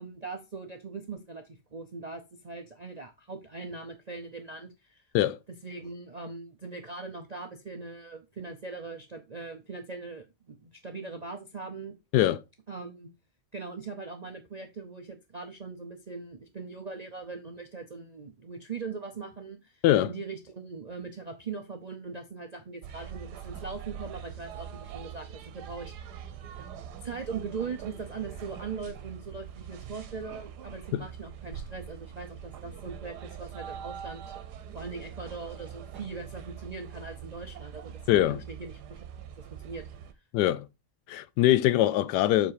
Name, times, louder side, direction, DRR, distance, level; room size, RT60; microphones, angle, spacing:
voice 1, 0.0-5.0 5.6-11.9 12.7-13.1 13.5-26.2 27.0-34.4 34.7-38.0 38.3-39.0 39.4-39.9, right 4 dB, 55° right, 0.4 m, -40 dB
sound 1, 22.8-40.1, right 8 dB, 85° right, 1.3 m, -43 dB
voice 2, 38.1-38.4 40.3-40.7 41.1-42.5, left 13 dB, 90° left, 1.2 m, -23 dB
7.1 x 3.9 x 4.7 m
omnidirectional pair, 1.7 m